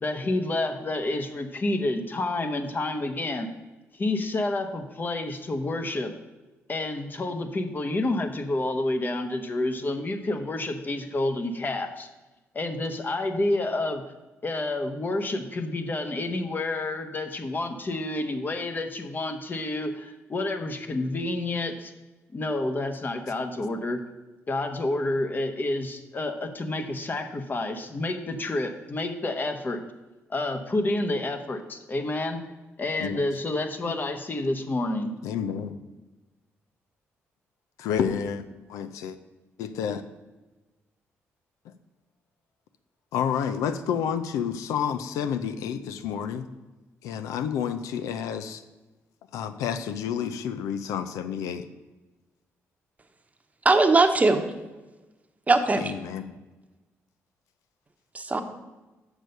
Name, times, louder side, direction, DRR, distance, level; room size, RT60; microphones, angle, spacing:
voice 1, 0.0-3.5 3.9-6.1 6.7-12.1 12.5-14.0 14.4-21.9 22.3-24.0 24.5-29.8 30.3-32.4 32.8-35.1, left 2 dB, 35° left, 6 dB, 1.0 m, -29 dB
voice 2, 35.2-35.8 37.8-39.2 39.6-40.0 41.6-41.7 43.1-46.5 47.0-48.6 49.3-51.7 55.8-56.4, left 8 dB, 85° left, 10 dB, 0.5 m, -30 dB
voice 3, 53.6-54.4 55.5-55.9 58.1-58.4, right 3 dB, 25° right, 7 dB, 0.9 m, -20 dB
6.6 x 6.2 x 5.3 m, 1.1 s
supercardioid pair, 65°, 5 cm